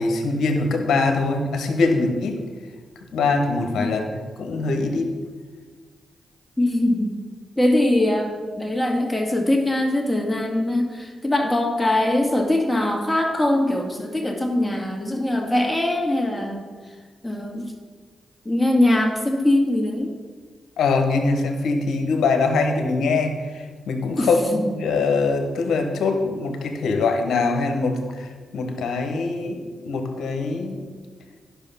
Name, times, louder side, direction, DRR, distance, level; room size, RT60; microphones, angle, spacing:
voice 1, 0.0-2.4 3.1-4.0 4.4-5.1 20.8-28.3 28.5-30.9, left 3 dB, 75° left, 5 dB, 1.2 m, -23 dB
voice 2, 6.6-7.1 7.6-16.6 17.2-17.7 18.5-20.1 24.2-24.7, left 1 dB, 10° left, 2 dB, 2.2 m, -22 dB
10.5 x 6.1 x 5.7 m, 1.5 s
hypercardioid pair, 40°, 0 cm